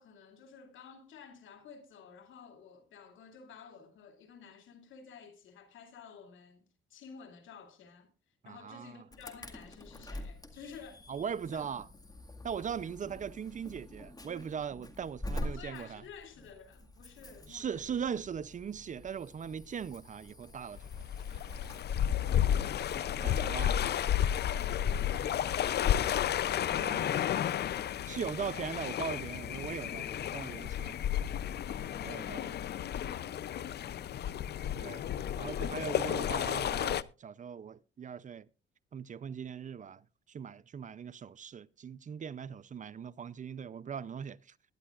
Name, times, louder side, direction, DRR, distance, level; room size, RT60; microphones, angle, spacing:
voice 1, 0.0-6.6 6.9-8.1 8.4-11.0 11.5-11.6 15.4-18.0 23.2-23.8 24.3-26.3 31.9-32.6 32.9-34.5, left 6 dB, 75° left, 2.6 m, -52 dB
voice 2, 8.4-9.1 11.1-11.9 12.4-16.0 17.5-21.0 21.3-21.4 23.2-23.8 26.7-27.2 28.1-31.0 32.0-32.5 34.8-35.0 35.4-38.5 38.9-40.0 40.3-44.4, right 7 dB, 40° right, 0.5 m, -40 dB
Insect / Alarm, 9.1-28.6, left 1 dB, 20° left, 1.9 m, -47 dB
sound 1, 20.8-37.0, left 10 dB, 55° left, 0.6 m, -32 dB
21.5 x 11.0 x 2.4 m
cardioid pair, 90°, 20 cm